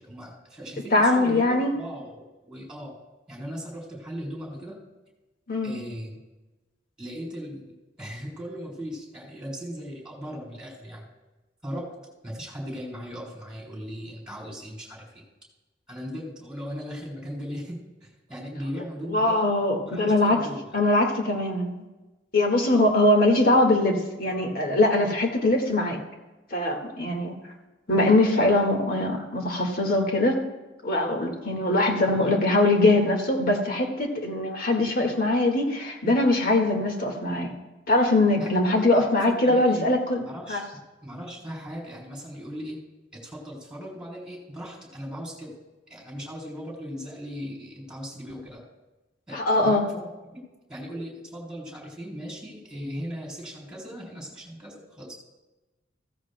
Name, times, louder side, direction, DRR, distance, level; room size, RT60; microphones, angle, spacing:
voice 1, 0.0-2.9 3.3-4.8 5.6-6.2 7.0-11.1 11.6-12.0 12.2-15.2 15.9-19.4 19.8-20.8 32.0-32.4 38.4-39.9 40.2-42.8 43.1-45.5 45.9-48.6 49.3-50.4 50.7-55.1, equal, 5° right, -2 dB, 3.9 m, -38 dB
voice 2, 0.9-1.8 5.5-5.7 19.1-20.4 20.7-21.8 22.3-26.0 26.5-27.3 27.9-30.4 30.8-37.5 37.9-40.2 40.5-40.6 49.3-49.8, left 2 dB, 50° left, 2 dB, 1.9 m, -22 dB
15.0 x 15.0 x 2.2 m, 1.1 s
head